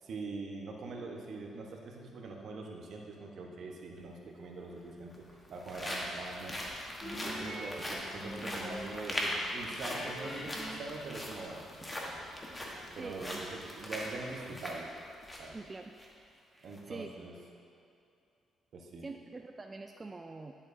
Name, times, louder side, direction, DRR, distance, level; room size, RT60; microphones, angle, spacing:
voice 1, 0.0-6.6 7.2-11.9 12.9-14.9 15.4-15.6 16.6-17.4 18.7-19.1, right 3 dB, 65° right, 0 dB, 1.1 m, -43 dB
sound 1, 4.0-4.1 5.0-15.5 15.9-16.1 16.6-16.8, equal, 20° left, 1.3 m, -40 dB
Guitar, 7.0-9.2 9.5-11.8, equal, 35° left, 1.9 m, -44 dB
voice 2, 13.0-13.5 15.5-15.9 16.5-17.1 19.0-20.6, right 3 dB, 25° right, 4 dB, 0.3 m, -45 dB
10.5 x 7.3 x 2.7 m, 2.5 s
cardioid pair, 90°, 0 cm